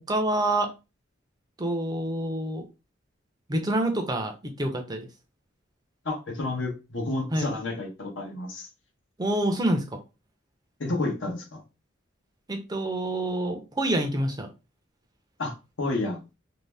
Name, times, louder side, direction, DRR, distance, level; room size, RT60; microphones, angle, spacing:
voice 1, 0.1-0.7 1.6-2.6 3.5-5.1 7.3-7.5 9.2-10.0 12.5-14.5, right 1 dB, 20° right, 5 dB, 0.5 m, -27 dB
voice 2, 6.0-8.7 10.8-11.6 15.4-16.2, left 2 dB, 75° left, 2 dB, 0.9 m, -30 dB
2.6 x 2.1 x 3.2 m, 0.28 s
head